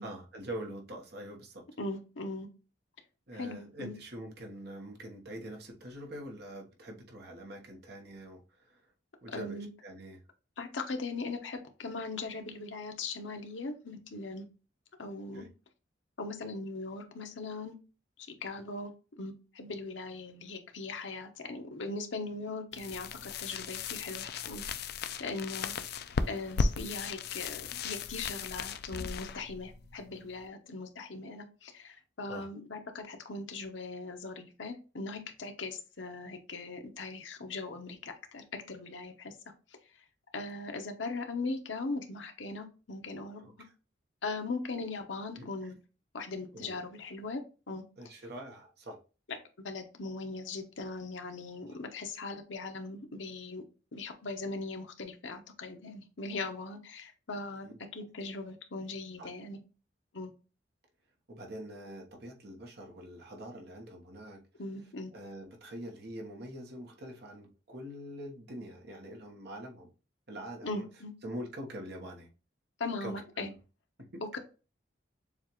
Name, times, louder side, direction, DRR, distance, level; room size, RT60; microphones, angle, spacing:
voice 1, 0.0-1.6 3.3-8.9 9.2-10.2 15.3-15.5 32.3-32.5 43.4-43.7 45.3-45.7 46.5-46.8 48.0-49.0 51.6-51.8 57.6-57.8 59.2-59.3 61.3-64.4 65.1-69.9 70.3-70.9 71.2-72.3 73.0-73.5 74.0-74.4, equal, 60° right, 1.2 m, -44 dB
voice 2, 1.8-2.5 3.3-3.9 9.3-9.7 10.6-14.4 15.0-15.5 16.2-17.8 18.4-18.9 19.2-24.6 25.2-25.7 26.3-39.3 40.3-43.4 44.2-45.8 46.1-47.4 47.7-47.8 49.6-53.6 53.9-59.6 60.1-60.3 64.6-65.1 70.6-71.1 72.8-73.5 74.3-74.4, left 3 dB, 85° left, 0.9 m, -39 dB
sound 1, 22.7-30.5, left 4 dB, 60° left, 0.4 m, -36 dB
7.0 x 2.4 x 3.0 m
head